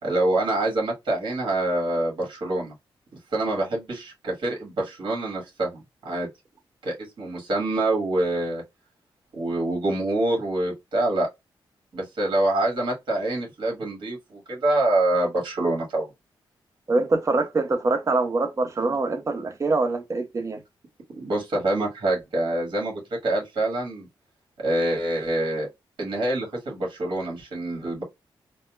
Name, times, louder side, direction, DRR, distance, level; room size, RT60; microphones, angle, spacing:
voice 1, 0.0-2.7 3.3-6.3 6.8-8.6 9.3-11.3 11.9-16.1 21.1-24.1 24.6-25.7 26.0-28.0, right 2 dB, 65° right, 1.7 m, -26 dB
voice 2, 16.9-20.6, right 3 dB, 35° right, 0.7 m, -24 dB
4.1 x 2.1 x 2.2 m
cardioid pair, 100°, 9 cm